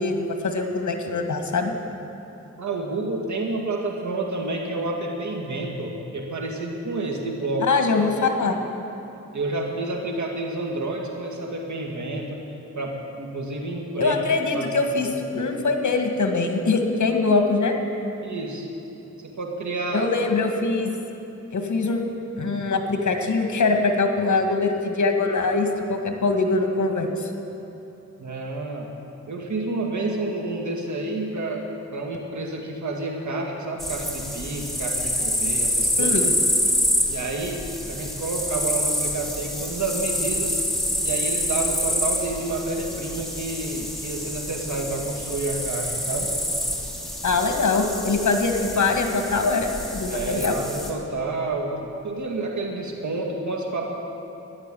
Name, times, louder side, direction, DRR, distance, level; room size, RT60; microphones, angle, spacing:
voice 1, 0.0-1.7 7.7-8.6 14.0-15.1 15.3-17.7 19.9-20.9 21.5-22.0 22.4-27.3 36.0-36.3 47.2-50.5, left 3 dB, 75° left, 4 dB, 1.9 m, -23 dB
voice 2, 2.6-7.7 9.3-12.4 12.8-14.2 14.5-14.7 15.0-15.1 18.2-18.7 19.2-20.1 28.2-28.9 29.3-36.1 37.1-40.6 41.0-46.3 50.1-53.9, right 2 dB, 70° right, 1 dB, 2.2 m, -29 dB
sound 1, 33.8-50.9, equal, ahead, 2.6 m, -27 dB
14.0 x 10.5 x 9.3 m, 2.9 s
cardioid pair, 70°, 30 cm